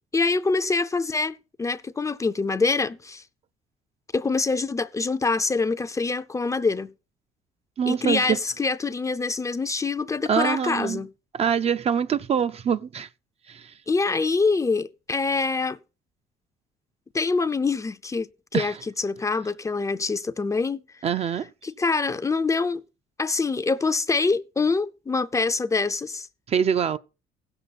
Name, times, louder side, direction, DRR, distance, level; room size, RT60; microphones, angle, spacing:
voice 1, 0.1-3.2 4.1-6.9 7.9-11.1 13.9-15.8 17.1-20.8 21.6-22.8 23.2-26.3, left 4 dB, 20° left, 0.4 m, -25 dB
voice 2, 7.8-8.4 10.3-11.0 11.3-13.1 13.5-13.7 18.5-18.8 21.0-21.5 26.5-27.0, right 7 dB, 35° right, 0.4 m, -24 dB
16.0 x 6.8 x 4.1 m
cardioid pair, 110°, 17 cm